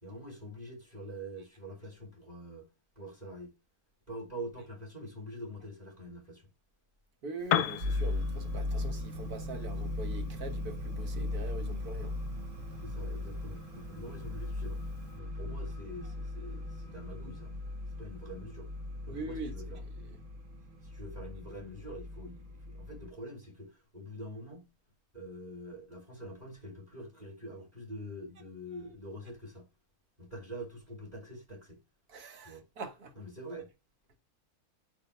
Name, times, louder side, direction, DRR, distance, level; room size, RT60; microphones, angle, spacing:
voice 1, 0.0-2.7 2.9-3.6 4.1-6.5 12.8-17.5 18.0-18.7 19.0-19.8 20.8-24.7 25.1-29.7 30.2-31.8 32.4-32.6 33.1-33.7, equal, 25° right, 3.2 m, -45 dB
voice 2, 7.2-12.2 19.1-20.2 32.1-33.1, right 3 dB, 70° right, 2.0 m, -43 dB
Piano, 7.4-15.2, left 11 dB, 65° left, 0.9 m, -40 dB
sound 1, 7.8-23.1, left 2 dB, 55° right, 1.4 m, -38 dB
8.6 x 6.9 x 3.3 m
omnidirectional pair, 1.7 m